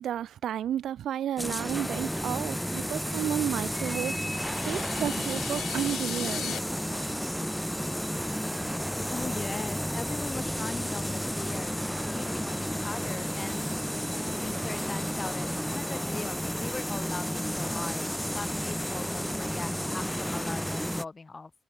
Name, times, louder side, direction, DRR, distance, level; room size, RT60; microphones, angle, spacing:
voice 1, 0.0-6.6, right 10 dB, 75° right, 1.3 m, -32 dB
sound 1, 1.4-21.0, equal, ahead, 0.9 m, -32 dB
sound 2, 3.8-6.6, left 10 dB, 75° left, 2.6 m, -39 dB
voice 2, 9.1-11.8 12.1-13.7 14.4-21.5, left 3 dB, 30° left, 3.0 m, -40 dB
cardioid pair, 85°, 0 cm